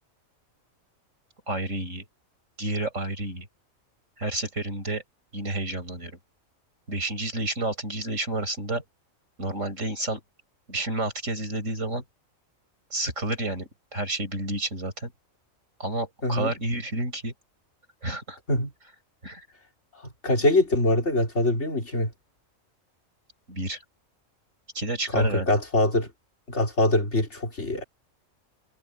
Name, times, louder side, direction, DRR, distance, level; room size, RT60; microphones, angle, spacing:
voice 1, 1.5-2.1 2.6-3.5 4.2-5.0 5.3-6.2 6.9-8.8 9.4-10.2 10.7-12.0 12.9-15.1 15.8-17.3 18.0-18.4 19.2-19.5 23.5-23.8 24.7-25.5, right 2 dB, 65° right, 6.7 m, -30 dB
voice 2, 16.2-16.5 18.5-18.7 20.2-22.1 25.1-26.1 26.5-27.8, left 1 dB, 55° left, 4.0 m, -23 dB
omnidirectional pair, 1.4 m